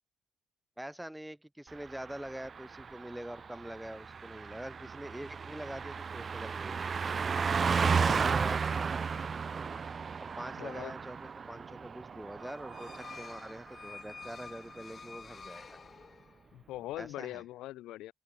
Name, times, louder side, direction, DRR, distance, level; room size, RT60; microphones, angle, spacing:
voice 1, 0.8-7.0 7.8-8.9 9.6-9.8 10.4-15.8 17.0-17.4, right 1 dB, 5° right, 4.7 m, -44 dB
Car passing by, 1.8-13.7 14.0-14.2, right 5 dB, 45° right, 1.2 m, -34 dB
voice 2, 8.0-8.5 10.6-10.9 16.5-18.1, left 15 dB, 70° left, 0.9 m, -42 dB
sound 1, 12.4-16.5, left 5 dB, 40° left, 5.2 m, -49 dB
open air
hypercardioid pair, 45°, 0 cm